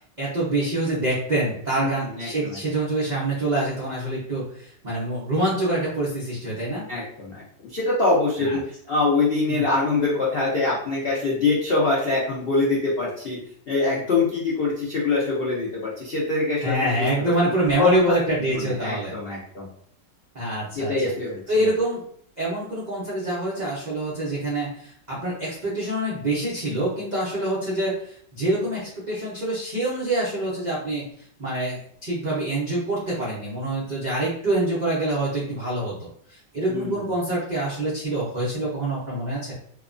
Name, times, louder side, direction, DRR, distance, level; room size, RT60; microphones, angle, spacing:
voice 1, 0.0-6.8 8.4-8.6 9.5-9.6 16.6-19.1 20.3-20.9 21.5-22.0 22.4-31.0 31.4-39.5, right 1 dB, 75° right, -8 dB, 0.4 m, -26 dB
voice 2, 1.8-2.6 6.9-8.6 8.9-13.4 13.7-17.1 17.8-18.1 18.5-19.7 20.7-21.7 36.7-37.1, left 3 dB, 85° left, -6 dB, 0.5 m, -24 dB
2.8 x 2.2 x 2.5 m, 0.62 s
omnidirectional pair, 1.9 m